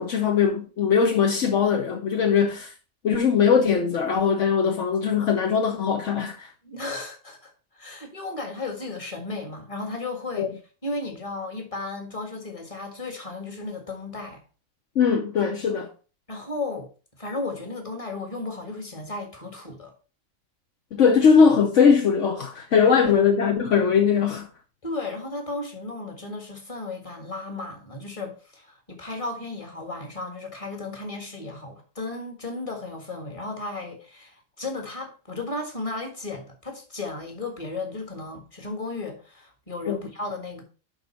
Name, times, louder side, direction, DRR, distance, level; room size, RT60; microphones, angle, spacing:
voice 1, 0.0-2.7 3.0-6.5 10.4-10.5 15.0-15.9 20.9-24.5 39.9-40.0, left 6 dB, 65° left, 1.2 m, -20 dB
voice 2, 6.6-10.5 10.8-14.4 16.3-16.9 17.2-19.9 24.8-40.6, left 2 dB, 25° left, 1.7 m, -34 dB
10.5 x 4.0 x 4.3 m
omnidirectional pair, 1.4 m